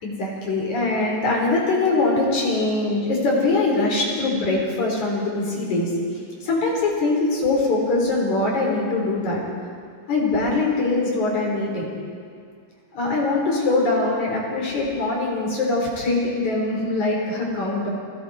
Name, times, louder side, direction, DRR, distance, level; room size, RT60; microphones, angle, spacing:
voice 1, 0.0-5.9 6.4-9.4 10.1-11.9 12.9-17.9, left 2 dB, 50° left, -2 dB, 5.5 m, -22 dB
29.5 x 21.0 x 4.4 m, 2.2 s
omnidirectional pair, 4.6 m